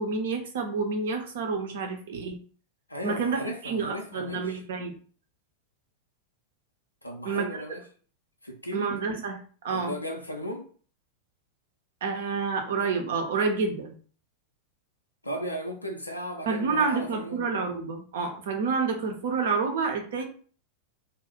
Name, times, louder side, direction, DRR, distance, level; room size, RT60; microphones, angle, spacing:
voice 1, 0.0-2.4 3.0-4.9 7.2-7.7 8.7-9.4 9.6-9.9 12.0-14.0 16.5-20.3, right 4 dB, 60° right, 4 dB, 0.6 m, -29 dB
voice 2, 2.9-4.6 7.0-7.8 8.4-8.9 9.7-10.7 15.2-17.4, equal, 85° left, 2 dB, 0.5 m, -36 dB
2.4 x 2.1 x 3.6 m, 0.43 s
figure-of-eight pair, 90°, 0 cm